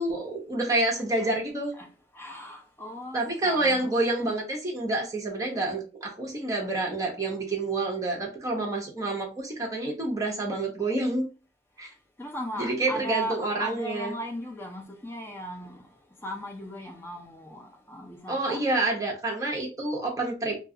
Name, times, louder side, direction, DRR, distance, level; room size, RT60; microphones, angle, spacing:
voice 1, 0.0-1.7 3.1-11.3 11.8-11.9 12.6-14.1 18.3-20.6, right 2 dB, 20° right, 0.8 m, -28 dB
voice 2, 1.7-4.1 12.2-18.7, right 1 dB, 15° left, 0.5 m, -38 dB
2.4 x 2.4 x 3.8 m
head